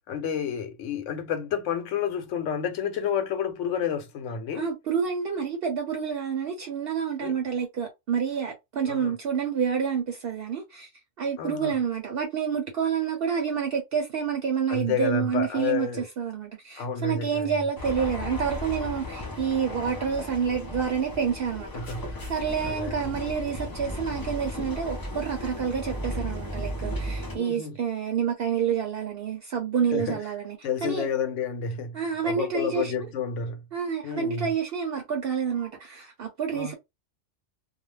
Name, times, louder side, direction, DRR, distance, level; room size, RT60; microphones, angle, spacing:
voice 1, 0.1-4.7 7.2-7.3 8.9-9.1 11.4-11.7 14.7-16.1 16.8-17.5 21.7-22.2 22.6-23.0 27.3-27.8 29.9-30.2 30.6-33.6 34.0-34.5 36.5-36.7, left 7 dB, 85° left, 1.0 m, -30 dB
voice 2, 4.5-10.9 11.2-21.7 22.3-31.1 31.9-33.1 33.7-36.7, right 7 dB, 60° right, 0.7 m, -28 dB
sound 1, 17.8-27.4, left 1 dB, 25° left, 0.5 m, -35 dB
2.3 x 2.1 x 3.1 m
omnidirectional pair, 1.2 m